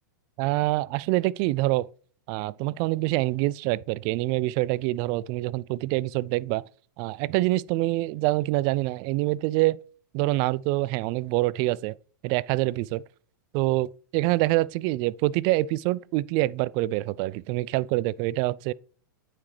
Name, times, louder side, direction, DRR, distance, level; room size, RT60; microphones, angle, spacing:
voice 1, 0.4-1.9 2.3-6.6 7.0-9.8 10.1-12.0 12.2-13.0 13.5-18.7, right 18 dB, 40° right, 0.3 m, -25 dB
8.7 x 5.9 x 3.2 m
hypercardioid pair, 110°, 11 cm